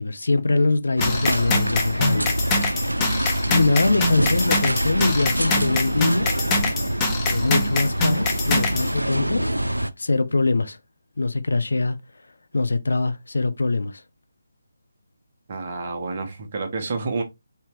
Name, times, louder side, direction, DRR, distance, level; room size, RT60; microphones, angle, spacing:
voice 1, 0.0-2.4 3.5-6.3 7.3-9.4 10.0-10.8 11.2-12.0 12.5-14.0, left 3 dB, 60° left, 0.5 m, -23 dB
sound 1, 1.0-8.9, left 2 dB, 15° left, 0.7 m, -25 dB
sound 2, 1.0-9.9, right 1 dB, 80° right, 0.4 m, -25 dB
voice 2, 15.5-17.2, right 3 dB, 35° right, 1.0 m, -29 dB
4.3 x 3.4 x 2.9 m
figure-of-eight pair, 150°, 0 cm